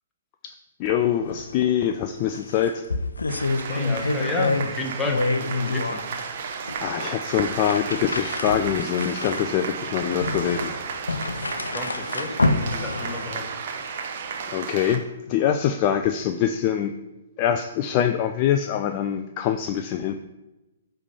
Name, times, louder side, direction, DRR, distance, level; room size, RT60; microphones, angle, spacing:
voice 1, 0.8-2.8 6.8-10.8 14.5-16.9 17.4-20.3, left 9 dB, 35° left, 7 dB, 0.4 m, -24 dB
sound 1, 1.3-1.5 1.8-1.9 2.3-4.7 5.0-6.1 6.7-6.8 7.5-13.5, left 3 dB, 75° left, 0.6 m, -27 dB
sound 2, 3.3-15.0, right 6 dB, 45° right, 0.9 m, -33 dB
voice 2, 3.6-6.0 11.7-12.4 12.7-13.4, left 2 dB, 10° left, 1 dB, 1.2 m, -32 dB
9.6 x 3.4 x 5.4 m, 1.0 s
figure-of-eight pair, 120°, 0 cm